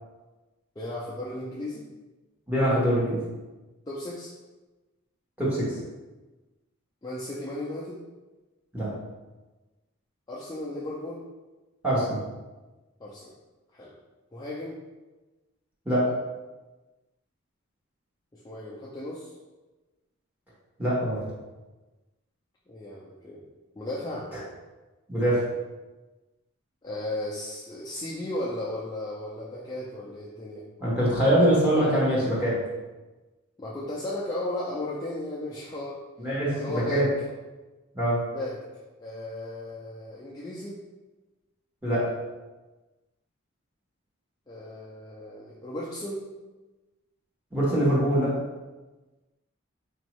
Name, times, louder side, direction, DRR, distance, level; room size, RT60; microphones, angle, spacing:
voice 1, 0.8-1.9 3.9-4.3 7.0-8.0 10.3-11.2 13.0-13.3 13.7-14.0 14.3-14.8 18.3-19.3 22.7-23.4 23.8-24.3 26.8-30.7 33.6-36.0 36.5-37.0 38.3-38.6 39.0-40.8 44.5-46.2, left 1 dB, 20° left, -7 dB, 0.4 m, -35 dB
voice 2, 2.5-3.2 5.4-5.7 8.7-8.9 11.8-12.2 15.8-16.1 20.8-21.3 25.1-25.4 30.8-32.6 36.2-37.1 37.9-38.2 41.8-42.1 47.5-48.4, equal, 10° right, -9 dB, 1.1 m, -23 dB
4.2 x 2.6 x 3.0 m, 1.2 s
head